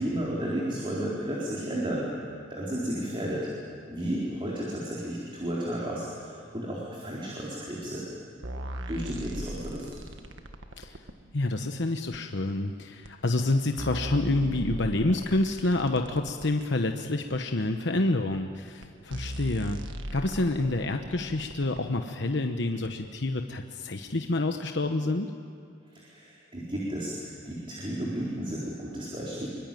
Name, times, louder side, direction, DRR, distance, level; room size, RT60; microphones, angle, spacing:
voice 1, 0.0-2.1 2.5-3.5 3.9-8.0 8.9-9.9 25.9-29.5, right 1 dB, 25° right, -5 dB, 4.1 m, -33 dB
sound 1, 8.4-11.2 12.1-12.2 13.0-13.1 13.5-16.5 17.3-17.4 18.3-18.4 18.8-18.9 19.1-21.8 22.8-22.9, right 1 dB, 75° right, 1.6 m, -38 dB
voice 2, 11.3-19.8 20.1-25.3, left 2 dB, 65° left, 5 dB, 1.1 m, -28 dB
24.5 x 23.0 x 9.2 m, 2.4 s
head